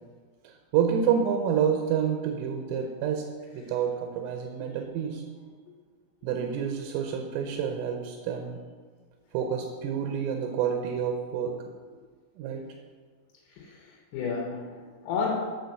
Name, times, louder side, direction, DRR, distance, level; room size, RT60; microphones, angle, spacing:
voice 1, 0.4-3.2 3.5-5.2 6.2-8.6 9.3-11.5 12.4-12.6, right 7 dB, 85° right, 3 dB, 3.3 m, -28 dB
voice 2, 13.5-15.4, left 5 dB, 85° left, -1 dB, 3.7 m, -32 dB
9.6 x 4.2 x 6.5 m, 1.5 s
omnidirectional pair, 5.8 m